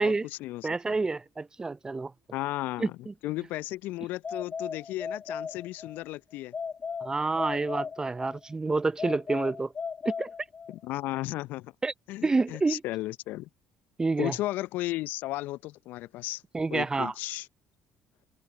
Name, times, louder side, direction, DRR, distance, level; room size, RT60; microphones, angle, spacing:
voice 1, 0.0-0.7 2.3-3.0 3.2-6.5 10.7-11.7 12.1-13.5 14.2-16.4 16.7-17.5, left 17 dB, 65° left, 0.6 m, -34 dB
voice 2, 0.6-2.1 2.8-3.1 7.0-9.7 10.0-10.3 11.8-11.9 12.2-12.8 14.0-14.4 16.5-17.1, right 3 dB, 20° right, 0.6 m, -28 dB
sound 1, 4.2-6.0 6.5-8.4 9.0-10.8, left 6 dB, 35° left, 2.1 m, -37 dB
hypercardioid pair, 55°, 3 cm